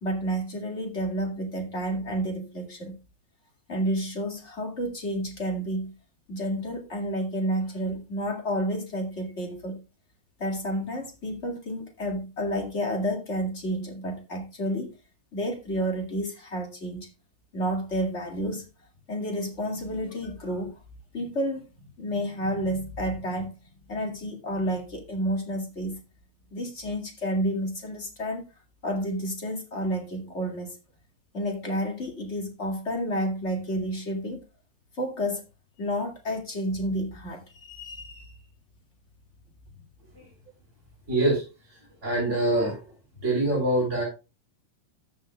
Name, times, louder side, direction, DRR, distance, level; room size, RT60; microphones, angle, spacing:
voice 1, 0.0-2.9 3.7-5.9 6.3-9.8 10.4-14.9 15.3-17.1 17.5-18.6 19.1-20.8 21.1-21.7 22.0-23.5 23.9-26.0 26.5-28.4 28.8-30.8 31.3-34.4 35.0-35.4 35.8-38.4, equal, 25° left, 4 dB, 1.8 m, -30 dB
voice 2, 41.1-42.9 43.2-44.0, right 1 dB, 20° right, -4 dB, 4.1 m, -25 dB
13.5 x 8.8 x 2.3 m, 0.29 s
omnidirectional pair, 4.1 m